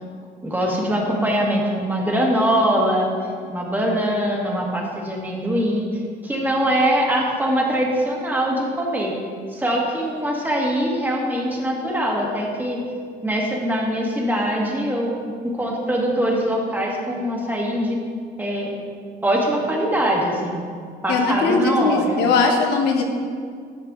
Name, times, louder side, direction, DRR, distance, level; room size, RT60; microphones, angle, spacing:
voice 1, 0.4-3.1 3.5-5.9 6.2-9.1 9.5-12.8 13.2-15.1 15.4-18.0 18.4-18.7 19.2-20.6 21.0-22.2, equal, 10° right, -2 dB, 1.7 m, -22 dB
voice 2, 21.1-23.0, left 4 dB, 80° left, 2 dB, 1.1 m, -19 dB
11.0 x 6.5 x 3.7 m, 2.1 s
cardioid pair, 110°, 17 cm